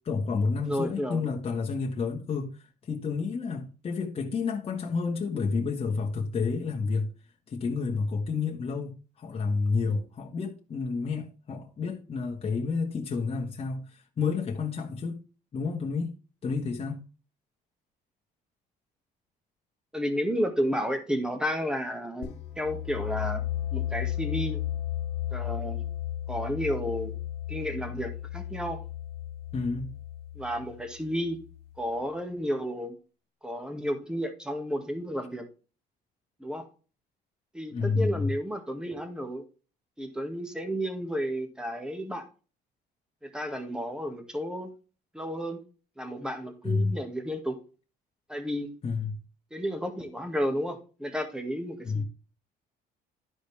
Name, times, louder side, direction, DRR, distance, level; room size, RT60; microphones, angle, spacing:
voice 1, 0.0-7.1 7.5-15.2 15.5-16.2 16.4-17.0 29.5-29.9 37.7-38.3 46.6-46.9 48.8-49.1 51.8-52.0, left 4 dB, 35° left, 1.5 m, -30 dB
voice 2, 0.7-1.2 19.9-23.4 23.7-24.6 25.3-25.8 26.3-27.1 27.5-28.8 30.4-31.4 31.8-33.0 33.4-35.5 36.4-36.7 37.5-39.4 40.0-42.2 43.2-44.7 45.1-45.6 46.0-47.6 48.3-48.7 49.5-52.0, equal, 5° right, 1.8 m, -32 dB
sound 1, 22.2-31.8, left 12 dB, 85° left, 1.8 m, -34 dB
11.5 x 5.2 x 3.4 m
cardioid pair, 110°, 17 cm